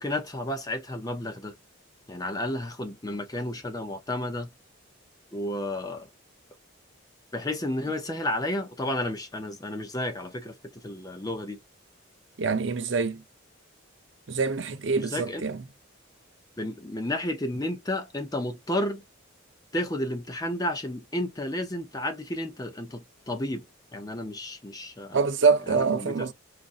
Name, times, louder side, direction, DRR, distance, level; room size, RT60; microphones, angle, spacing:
voice 1, 0.0-1.6 2.1-4.5 5.3-6.1 7.3-11.6 14.9-15.4 16.6-19.0 19.7-23.6 23.9-25.2 25.7-26.3, left 1 dB, 20° left, 0.5 m, -32 dB
voice 2, 12.4-13.2 14.3-15.6 25.1-26.3, right 4 dB, 60° right, 0.6 m, -25 dB
5.1 x 2.5 x 2.4 m
head